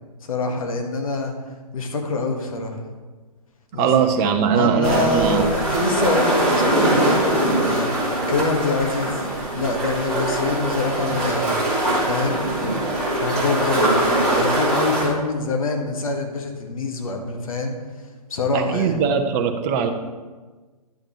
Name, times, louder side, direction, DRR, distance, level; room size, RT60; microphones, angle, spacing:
voice 1, 0.2-1.3 1.7-2.8 3.7-3.9 4.5-7.9 8.3-11.5 12.1-12.4 13.2-13.9 14.3-17.7 18.3-19.0, left 3 dB, 60° left, 3 dB, 1.6 m, -25 dB
voice 2, 3.8-5.5 18.5-19.9, right 7 dB, 25° right, 5 dB, 0.8 m, -20 dB
sound 1, 4.8-15.1, right 1 dB, 5° left, 2.8 m, -22 dB
10.5 x 8.8 x 3.1 m, 1.3 s
figure-of-eight pair, 130°, 20 cm